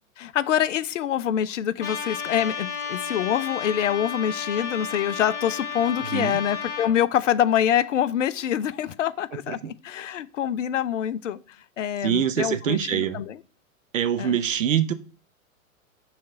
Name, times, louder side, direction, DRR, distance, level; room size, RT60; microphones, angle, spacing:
voice 1, 0.2-11.4 11.8-13.4 14.2-14.4, left 10 dB, 60° left, 0.6 m, -25 dB
Trumpet, 1.8-6.9, left 6 dB, 25° left, 2.2 m, -32 dB
voice 2, 12.0-13.2 13.9-14.9, right 9 dB, 60° right, 0.8 m, -24 dB
6.5 x 3.2 x 5.3 m
figure-of-eight pair, 105°, 43 cm